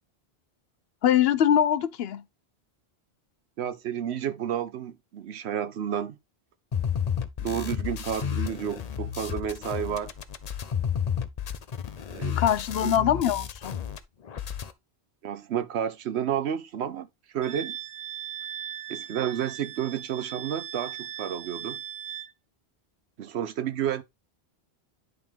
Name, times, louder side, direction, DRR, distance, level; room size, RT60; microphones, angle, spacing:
voice 1, 1.0-2.2 12.4-13.8, left 10 dB, 75° left, 0.8 m, -23 dB
voice 2, 3.6-6.2 7.4-10.1 12.1-12.4 12.8-12.9 15.2-17.1 17.3-17.8 18.9-21.8 23.2-24.0, right 9 dB, 85° right, 1.0 m, -31 dB
sound 1, 6.7-14.0 14.2-14.7, left 8 dB, 45° left, 0.7 m, -31 dB
Wind instrument woodwind instrument, 17.4-22.3, right 10 dB, 65° right, 0.8 m, -38 dB
10.5 x 3.6 x 3.4 m
omnidirectional pair, 1.1 m